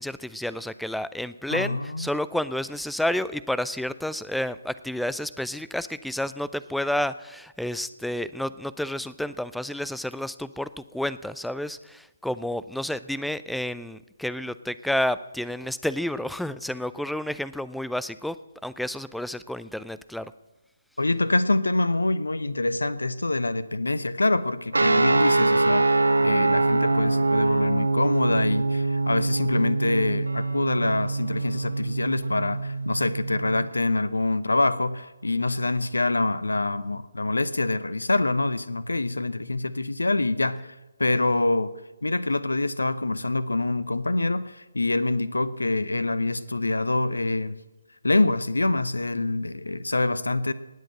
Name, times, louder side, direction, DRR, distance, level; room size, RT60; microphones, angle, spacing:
voice 1, 0.0-18.4 18.6-20.3, left 1 dB, ahead, 16 dB, 0.4 m, -30 dB
voice 2, 1.5-2.1 21.0-40.6 41.0-41.7 42.0-47.6 48.0-50.5, left 2 dB, 70° left, 16 dB, 0.9 m, -25 dB
sound 1, 24.7-33.7, right 2 dB, 70° right, 1.2 m, -24 dB
19.0 x 7.7 x 7.7 m, 1.1 s
figure-of-eight pair, 140°, 0 cm